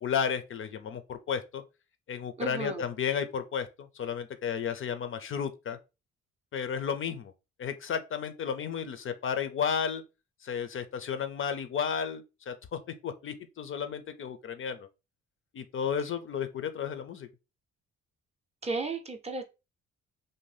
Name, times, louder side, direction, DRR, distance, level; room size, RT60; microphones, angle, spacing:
voice 1, 0.0-1.6 2.1-5.8 6.5-7.3 7.6-10.0 10.4-14.9 15.5-17.3, left 7 dB, 45° left, 0.4 m, -33 dB
voice 2, 2.4-2.8 18.6-19.4, right 3 dB, 20° right, 0.5 m, -34 dB
2.6 x 2.0 x 3.2 m
cardioid pair, 90°, 30 cm